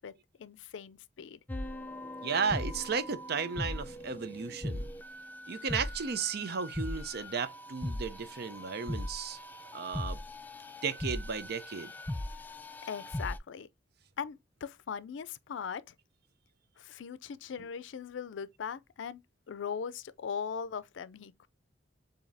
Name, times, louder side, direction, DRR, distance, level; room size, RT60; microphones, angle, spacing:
voice 1, 0.0-1.4 12.8-13.7 14.2-15.9 16.8-19.2 19.5-21.5, left 6 dB, 90° left, 0.4 m, -40 dB
sound 1, 1.5-13.4, left 1 dB, 10° left, 0.3 m, -39 dB
voice 2, 2.2-4.8 5.5-9.4 9.7-10.2 10.8-11.9, right 5 dB, 60° right, 0.6 m, -34 dB
7.1 x 2.8 x 2.6 m
head